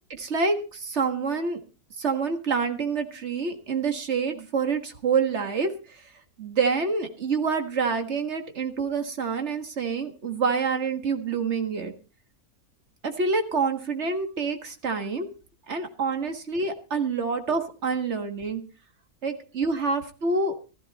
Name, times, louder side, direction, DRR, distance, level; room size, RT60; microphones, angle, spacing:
voice 1, 0.1-1.6 2.0-5.7 6.4-11.9 13.0-15.3 15.7-18.6 19.2-20.5, right 4 dB, 45° right, 7 dB, 1.9 m, -27 dB
15.0 x 13.5 x 4.2 m, 0.33 s
omnidirectional pair, 1.6 m